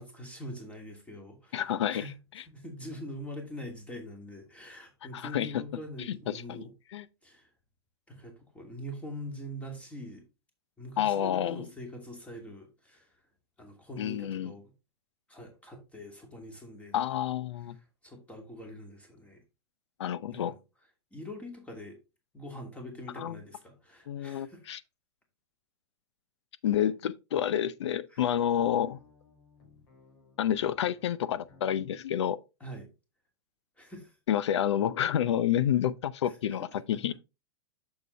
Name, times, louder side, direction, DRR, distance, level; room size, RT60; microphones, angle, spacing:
voice 1, 0.0-2.2 2.5-6.7 7.2-7.5 8.1-10.2 10.8-13.1 13.6-14.7 15.3-17.3 18.0-19.4 20.3-20.6 21.1-22.0 22.3-24.6 28.1-28.3 32.6-32.9 33.8-34.2 36.2-36.4, equal, 10° left, 2.6 m, -44 dB
voice 2, 1.5-2.0 5.1-5.6 6.1-6.6 6.9-7.1 11.0-11.7 14.0-14.5 16.9-17.8 20.0-20.6 23.2-23.4 24.1-24.8 26.6-29.0 30.4-32.4 34.3-37.1, left 10 dB, 85° left, 0.7 m, -29 dB
sound 1, 28.2-32.0, left 3 dB, 65° left, 4.4 m, -59 dB
6.8 x 6.8 x 3.3 m
hypercardioid pair, 135°, 14 cm